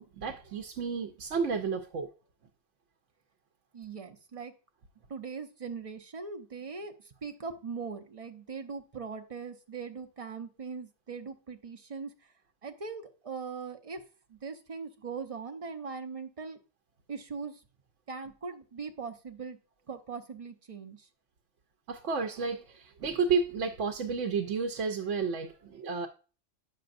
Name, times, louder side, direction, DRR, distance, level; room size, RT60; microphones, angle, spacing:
voice 1, 0.0-2.1 21.9-26.1, right 5 dB, 85° right, 4 dB, 1.0 m, -31 dB
voice 2, 3.7-4.5 5.1-12.1 12.6-14.0 14.3-16.6 17.1-17.6 18.1-19.6 19.9-21.1, right 5 dB, 35° right, 5 dB, 0.7 m, -40 dB
8.9 x 6.4 x 2.5 m, 0.35 s
omnidirectional pair, 1.2 m